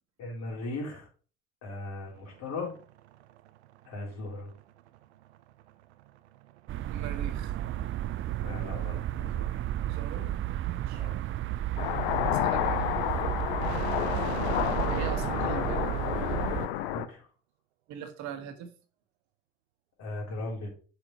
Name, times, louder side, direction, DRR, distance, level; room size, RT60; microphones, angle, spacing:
voice 1, 0.2-1.1 1.6-2.7 3.9-4.5 8.4-9.6 10.1-10.3 10.9-11.2 14.1-14.3 16.9-17.3 20.0-20.7, left 2 dB, 55° left, -1 dB, 3.5 m, -38 dB
sound 1, 2.0-16.6, right 13 dB, 80° right, 0.6 m, -44 dB
sound 2, 6.7-16.7, right 13 dB, 40° right, 0.5 m, -32 dB
voice 2, 6.9-7.5 9.9-10.3 10.7-11.0 12.4-12.8 14.9-15.9 17.9-18.7, right 9 dB, 60° right, 7 dB, 1.5 m, -41 dB
sound 3, 11.8-17.1, left 13 dB, 70° left, 0.7 m, -30 dB
7.3 x 4.8 x 4.6 m, 0.39 s
hypercardioid pair, 65°, 32 cm